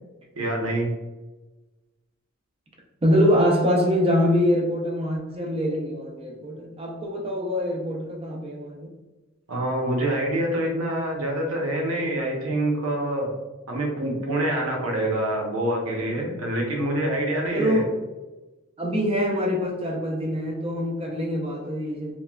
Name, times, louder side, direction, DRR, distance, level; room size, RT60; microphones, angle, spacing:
voice 1, 0.3-0.9 9.5-13.3 13.7-17.8, right 1 dB, 85° right, 0 dB, 0.7 m, -26 dB
voice 2, 3.0-8.9 17.5-17.9 18.8-22.2, equal, 25° right, 0 dB, 0.4 m, -24 dB
3.0 x 2.2 x 2.2 m, 1.1 s
head